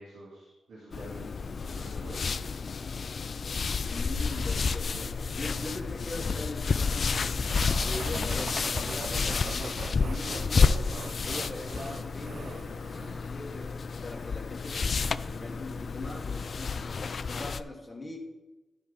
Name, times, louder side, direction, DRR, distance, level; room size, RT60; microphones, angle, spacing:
voice 1, 0.0-2.4, right 1 dB, 80° right, -7 dB, 2.5 m, -47 dB
sound 1, 0.9-17.6, left 5 dB, 55° left, 0.4 m, -30 dB
voice 2, 3.9-10.9 11.2-12.7 13.3-17.0 17.3-18.2, left 2 dB, 30° left, 0 dB, 2.2 m, -41 dB
sound 2, 7.5-13.3, right 4 dB, 60° right, 0.7 m, -41 dB
13.0 x 5.5 x 4.0 m, 1.1 s
supercardioid pair, 40°, 0 cm